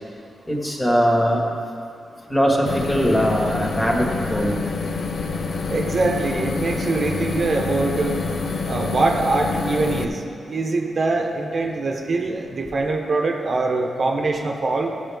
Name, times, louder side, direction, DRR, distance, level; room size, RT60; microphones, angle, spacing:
voice 1, 0.5-1.4 2.3-4.6, equal, 15° left, -1 dB, 1.6 m, -20 dB
sound 1, 2.7-10.0, left 4 dB, 60° left, 0.5 m, -27 dB
voice 2, 5.7-8.2 8.7-14.9, right 3 dB, 50° right, 1 dB, 1.0 m, -23 dB
15.0 x 7.0 x 3.5 m, 2.4 s
cardioid pair, 100°, 0 cm